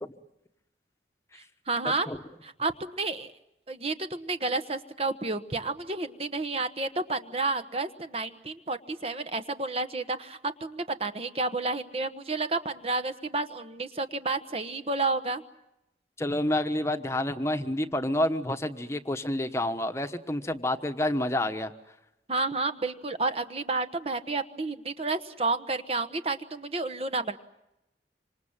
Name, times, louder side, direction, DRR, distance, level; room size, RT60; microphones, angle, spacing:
voice 1, 1.7-2.1 2.4-3.3 3.7-15.4 22.3-27.4, right 3 dB, 35° right, 10 dB, 1.2 m, -30 dB
voice 2, 16.2-21.7, left 1 dB, 15° left, 7 dB, 1.2 m, -29 dB
27.0 x 26.5 x 7.4 m, 0.89 s
head